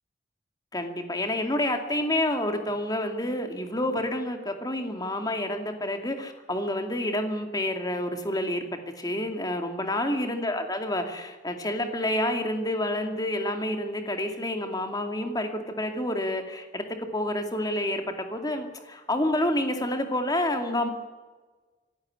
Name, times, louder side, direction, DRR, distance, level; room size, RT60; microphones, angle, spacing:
voice 1, 0.7-8.6 9.0-20.9, left 1 dB, 20° left, 5 dB, 2.5 m, -29 dB
25.5 x 12.0 x 9.7 m, 1.3 s
head